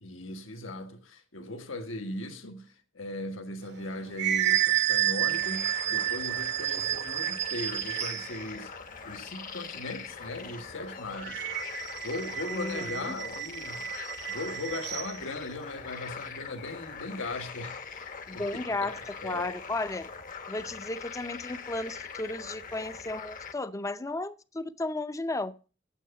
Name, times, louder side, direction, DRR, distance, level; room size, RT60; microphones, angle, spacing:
voice 1, 0.0-8.7 9.0-11.4 11.7-13.8 14.3-18.4 18.8-19.5, left 2 dB, 80° left, 1.6 m, -38 dB
sound 1, 3.7-8.4 11.2-15.2, right 12 dB, 60° right, 1.0 m, -30 dB
sound 2, 5.3-23.5, left 5 dB, 45° left, 1.0 m, -42 dB
voice 2, 12.4-13.2 18.3-20.1 20.5-25.5, left 2 dB, 15° left, 0.6 m, -34 dB
9.3 x 7.8 x 6.8 m
head